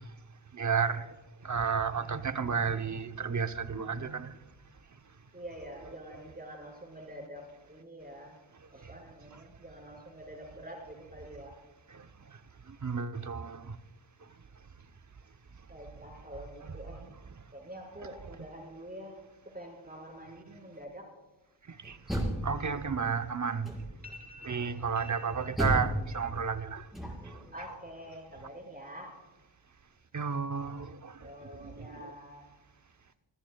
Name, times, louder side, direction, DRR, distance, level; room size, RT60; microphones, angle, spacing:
voice 1, 0.5-1.1 1.4-4.4 8.8-8.9 9.3-9.4 11.9-12.4 12.7-13.8 16.6-17.0 21.7-23.7 24.5-26.9 27.2-27.4 30.1-32.1, right 6 dB, 40° right, 0.9 m, -33 dB
voice 2, 5.3-8.4 8.7-11.6 15.7-17.0 17.5-19.2 19.5-21.1 24.0-24.8 27.5-29.1 31.2-32.5, equal, 20° right, 6.0 m, -46 dB
Door, 21.8-23.1 23.6-24.2 25.6-27.5, right 1 dB, ahead, 5.4 m, -33 dB
25.5 x 14.0 x 2.3 m
wide cardioid pair, 90°, 46 cm